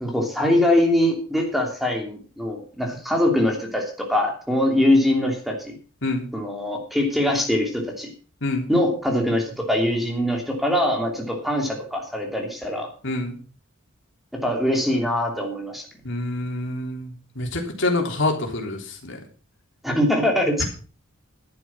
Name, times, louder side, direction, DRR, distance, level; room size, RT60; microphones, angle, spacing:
voice 1, 0.0-5.7 6.3-8.1 8.7-12.9 14.3-15.9 19.8-20.6, left 1 dB, ahead, 2 dB, 2.9 m, -22 dB
voice 2, 13.0-13.4 16.0-19.2, left 2 dB, 60° left, 2 dB, 3.4 m, -26 dB
11.5 x 9.0 x 6.0 m, 0.38 s
head